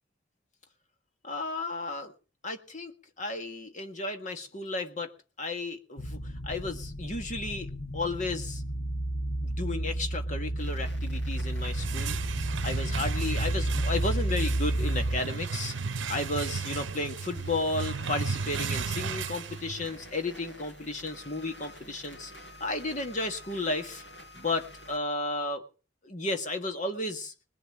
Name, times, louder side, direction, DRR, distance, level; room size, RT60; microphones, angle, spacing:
voice 1, 1.2-2.1 2.4-5.1 5.4-8.6 9.4-12.2 12.6-15.7 16.1-22.3 22.6-24.0 24.3-25.6 26.0-27.3, left 2 dB, 40° left, 6 dB, 1.7 m, -33 dB
sound 1, 6.0-15.2, right 1 dB, 55° left, 1.5 m, -31 dB
sound 2, 10.6-25.0, equal, 80° left, 7.5 m, -50 dB
sound 3, 11.4-20.1, right 5 dB, 70° right, 0.8 m, -34 dB
20.5 x 7.2 x 8.6 m, 0.38 s
head